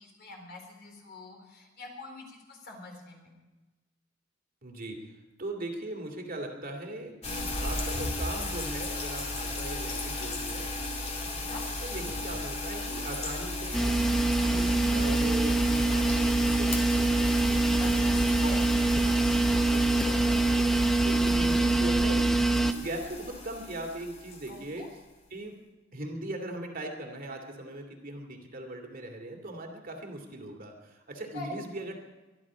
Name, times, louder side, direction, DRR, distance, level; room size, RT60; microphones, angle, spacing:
voice 1, 0.0-3.3 7.2-7.5 11.2-11.6 17.6-17.9 18.4-18.6 24.5-24.9 31.3-31.5, left 2 dB, 55° left, 1 dB, 3.8 m, -44 dB
voice 2, 4.6-5.1 5.4-11.0 11.8-18.6 19.0-24.9 25.3-25.5 25.9-32.0, right 1 dB, 45° right, 3 dB, 2.5 m, -40 dB
sound 1, 7.2-24.7, left 2 dB, 35° left, 2.5 m, -35 dB
sound 2, 13.7-22.7, right 2 dB, ahead, 0.8 m, -25 dB
23.5 x 11.0 x 5.0 m, 1.1 s
head